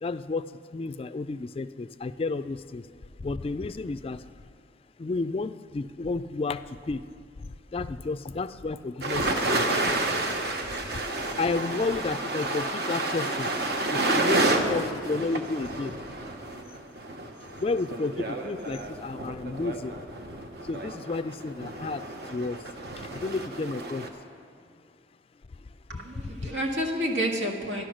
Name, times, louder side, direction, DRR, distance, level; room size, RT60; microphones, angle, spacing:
voice 1, 0.0-2.9 3.2-4.2 5.0-7.0 7.4-9.7 10.9-13.5 13.9-16.0 17.6-19.9 20.6-22.7 23.0-24.1 25.9-26.5, left 3 dB, 30° left, 13 dB, 0.3 m, -32 dB
sound 1, 9.0-24.1, right 2 dB, 60° right, 1.1 m, -30 dB
voice 2, 25.9-27.8, equal, 85° right, 1 dB, 1.8 m, -29 dB
12.0 x 11.5 x 6.3 m, 2.1 s
head